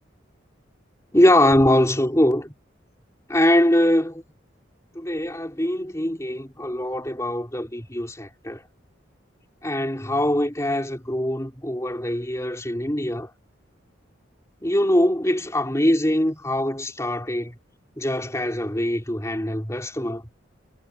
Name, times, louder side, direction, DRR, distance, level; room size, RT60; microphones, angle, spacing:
voice 1, 1.1-2.5 3.3-4.2 4.9-8.6 9.6-13.3 14.6-17.5 18.0-20.2, left 1 dB, 15° left, 3.4 m, -22 dB
head